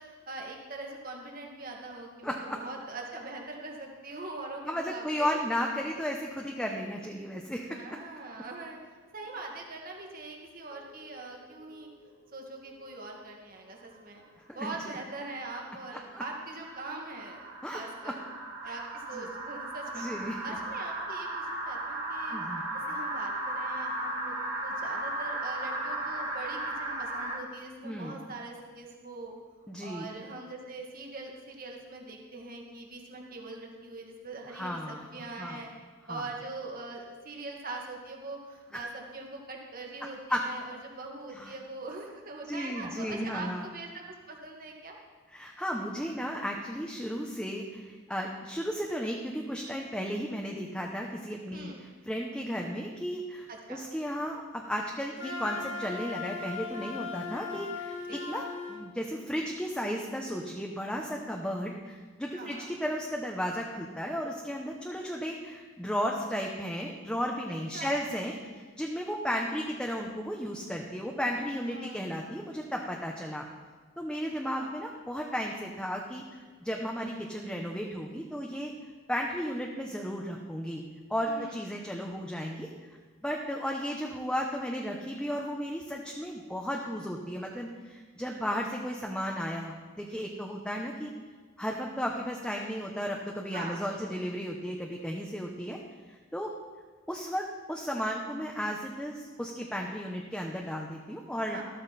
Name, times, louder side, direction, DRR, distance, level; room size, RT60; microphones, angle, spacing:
voice 1, 0.0-5.3 7.7-8.8 9.1-11.9 12.3-14.2 14.5-18.2 18.6-20.0 20.4-22.4 22.9-29.3 29.8-35.7 36.1-45.0 51.5-51.8 53.5-53.8 58.1-58.2 62.4-62.7 67.7-67.9 71.6-72.3 74.4-74.7 81.2-81.5 93.5-94.2 101.5-101.6, right 3 dB, 45° right, 0 dB, 2.1 m, -42 dB
voice 2, 2.2-2.6 4.6-7.8 14.5-14.7 16.1-16.2 17.6-18.1 18.6-18.8 19.1-19.3 19.9-20.4 22.3-22.6 27.8-28.2 29.7-30.1 34.5-35.6 36.1-36.3 38.7-38.9 40.3-40.4 41.3-41.5 42.5-43.7 45.3-51.7 52.0-58.4 58.7-73.4 74.0-78.7 79.1-80.8 81.1-82.7 83.2-91.1 91.6-95.8 96.1-96.5 97.1-101.6, equal, 5° left, 0 dB, 0.9 m, -34 dB
sound 1, 10.7-12.3 12.7-13.3 14.9-27.4, right 1 dB, 80° right, 2.6 m, -36 dB
Wind instrument woodwind instrument, 55.2-58.9, left 4 dB, 75° left, 2.2 m, -38 dB
14.0 x 13.5 x 4.3 m, 1.4 s
head